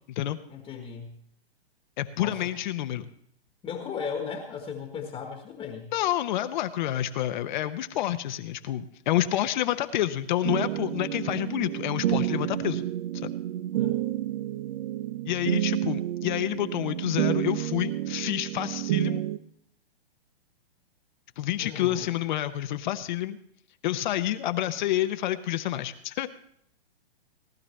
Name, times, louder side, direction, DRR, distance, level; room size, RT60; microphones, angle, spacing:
voice 1, 0.5-1.2 2.2-2.5 3.6-5.9 13.7-14.0 21.6-22.1, left 6 dB, 15° left, 3 dB, 1.4 m, -36 dB
voice 2, 2.0-3.1 5.9-12.8 13.1-13.3 15.3-19.2 21.4-23.4 23.8-26.3, left 13 dB, 50° left, 10 dB, 0.9 m, -28 dB
sound 1, 10.4-19.4, right 13 dB, 45° right, 0.6 m, -29 dB
18.5 x 12.0 x 3.2 m, 0.68 s
hypercardioid pair, 130°, 31 cm